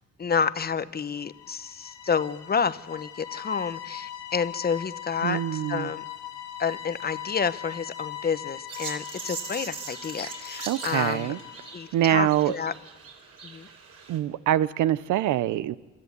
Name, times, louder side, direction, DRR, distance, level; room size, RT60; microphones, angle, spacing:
voice 1, 0.2-6.0 6.6-11.3 11.7-12.7 13.4-13.7, left 6 dB, 30° left, 15 dB, 0.8 m, -29 dB
sound 1, 1.2-11.9, left 11 dB, 85° left, 2.0 m, -40 dB
voice 2, 5.2-5.9 10.7-11.4 11.9-12.5 14.1-15.8, right 12 dB, 80° right, 17 dB, 0.7 m, -24 dB
sound 2, 8.7-14.2, right 5 dB, 50° right, 3.9 m, -41 dB
26.0 x 13.0 x 8.2 m, 1.2 s
cardioid pair, 90°, 30 cm